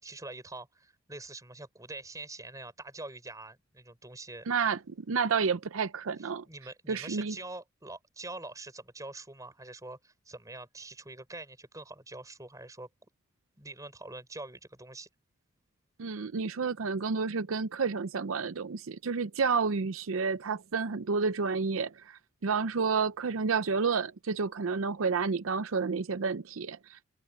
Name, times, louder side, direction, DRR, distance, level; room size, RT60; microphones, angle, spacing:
voice 1, 0.0-4.5 6.2-12.9 13.6-15.1, right 2 dB, 15° right, 5.7 m, -45 dB
voice 2, 4.5-6.4 6.9-7.3 16.0-27.0, right 5 dB, 75° right, 0.6 m, -30 dB
head